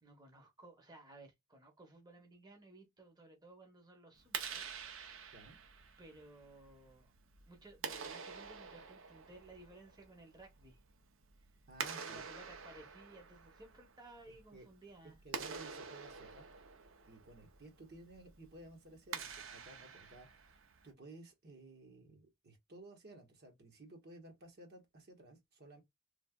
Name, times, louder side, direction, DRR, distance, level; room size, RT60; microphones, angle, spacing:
voice 1, 0.0-5.4 6.0-7.1 7.5-10.8 11.4-11.5 12.0-15.2, right 2 dB, 20° right, 0.8 m, -58 dB
Clapping, 4.2-20.9, right 6 dB, 70° right, 0.6 m, -48 dB
voice 2, 11.7-12.2 14.5-14.7 15.2-16.5 17.1-25.8, right 2 dB, 55° right, 1.1 m, -56 dB
3.2 x 2.4 x 2.2 m
head